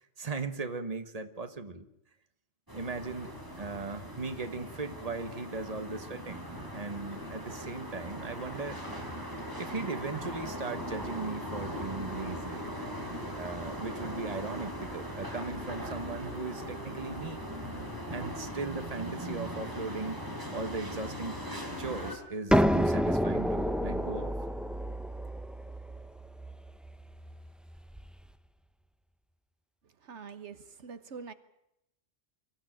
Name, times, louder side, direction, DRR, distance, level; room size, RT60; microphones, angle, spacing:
voice 1, 0.0-1.9 2.7-3.3 3.6-6.4 6.7-8.8 9.6-12.7 13.3-17.4 18.1-20.2 20.5-21.4 21.8-24.3, right 3 dB, 35° right, 10 dB, 1.6 m, -38 dB
sound 1, 2.7-22.2, equal, 20° right, 4.5 m, -39 dB
sound 2, 22.5-28.1, equal, ahead, 0.6 m, -29 dB
voice 2, 30.0-31.3, right 5 dB, 80° right, 13 dB, 1.5 m, -44 dB
24.5 x 15.0 x 9.0 m, 0.85 s
omnidirectional pair, 1.2 m